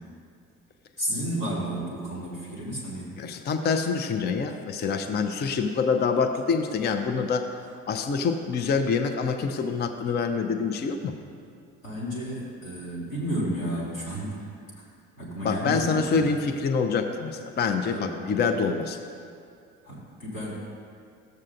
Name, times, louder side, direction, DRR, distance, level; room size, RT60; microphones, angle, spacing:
voice 1, 1.0-3.1 11.8-14.5 15.2-16.3 17.9-18.1 19.8-20.5, right 1 dB, 90° left, -8 dB, 1.9 m, -32 dB
voice 2, 3.2-7.5 7.9-11.1 15.4-19.0, left 5 dB, 25° left, 6 dB, 0.5 m, -26 dB
13.5 x 7.4 x 2.5 m, 2.4 s
figure-of-eight pair, 50°, 39 cm